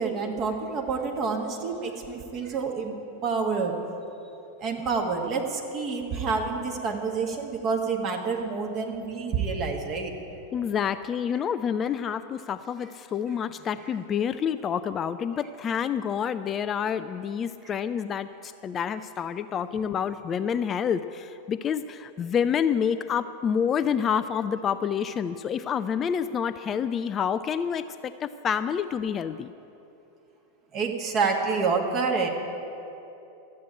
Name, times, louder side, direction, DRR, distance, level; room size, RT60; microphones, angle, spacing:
voice 1, 0.0-2.9 3.2-3.7 4.6-10.1 30.7-32.3, right 4 dB, 35° right, 1 dB, 1.8 m, -28 dB
voice 2, 10.5-29.5, left 7 dB, 25° left, 11 dB, 0.3 m, -28 dB
12.5 x 8.5 x 9.1 m, 2.9 s
figure-of-eight pair, 90°, 0 cm